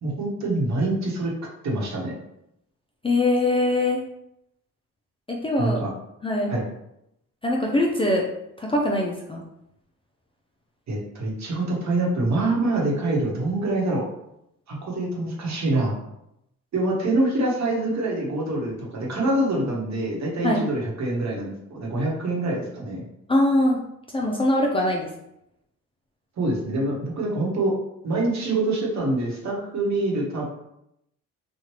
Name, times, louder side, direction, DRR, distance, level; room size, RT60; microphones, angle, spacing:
voice 1, 0.0-1.3 1.6-2.1 5.6-5.9 6.5-6.6 10.9-14.0 14.7-15.9 16.7-23.0 26.4-27.7 28.0-30.5, right 2 dB, 55° right, -2 dB, 1.1 m, -25 dB
voice 2, 3.0-4.0 5.3-5.8 6.2-6.6 7.4-8.3 8.6-9.4 20.4-20.7 23.3-23.8 24.1-25.1, left 1 dB, 15° left, -1 dB, 0.4 m, -22 dB
3.1 x 2.4 x 3.0 m, 0.81 s
cardioid pair, 85°, 34 cm